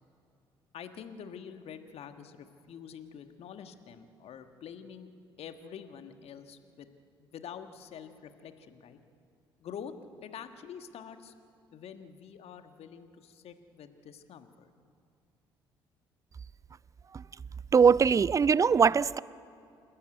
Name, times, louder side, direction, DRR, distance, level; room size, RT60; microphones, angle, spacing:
voice 1, 0.7-5.1 5.4-6.9 7.2-9.0 9.6-9.9 10.2-11.3 11.7-14.7, left 8 dB, 55° left, 1.5 m, -46 dB
voice 2, 17.7-19.2, right 6 dB, 25° right, 0.4 m, -21 dB
27.5 x 12.0 x 9.3 m
figure-of-eight pair, 50°, 13 cm